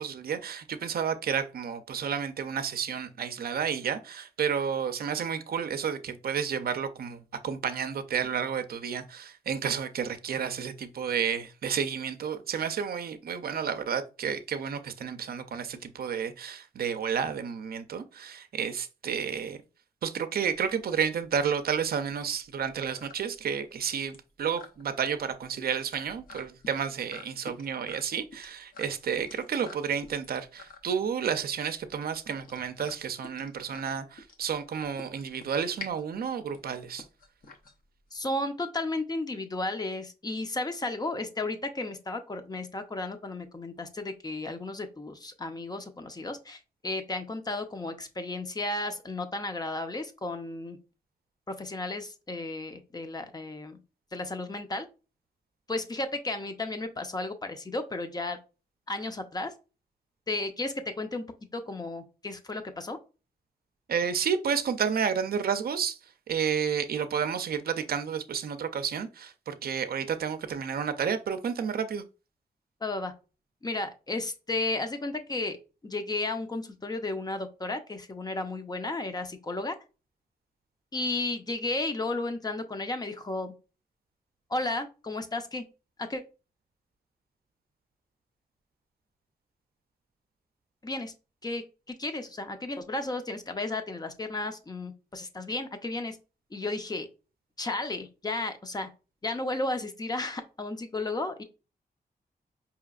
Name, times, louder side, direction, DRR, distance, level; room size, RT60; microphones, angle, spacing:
voice 1, 0.0-19.6 20.0-37.0 63.9-66.0 66.3-72.0, right 7 dB, 70° right, 0.5 m, -31 dB
sound 1, 20.5-38.3, left 3 dB, 60° left, 0.8 m, -49 dB
voice 2, 38.1-50.8 51.5-53.8 54.1-54.9 55.7-58.4 58.9-59.5 60.3-61.3 61.5-63.0 72.8-73.1 73.6-75.6 75.8-79.8 80.9-83.5 84.5-85.7 86.0-86.2 90.8-91.1 91.4-96.2 96.5-97.1 97.6-98.9 99.2-101.4, left 2 dB, 25° left, 0.6 m, -33 dB
4.9 x 2.9 x 2.3 m
wide cardioid pair, 95°, 16 cm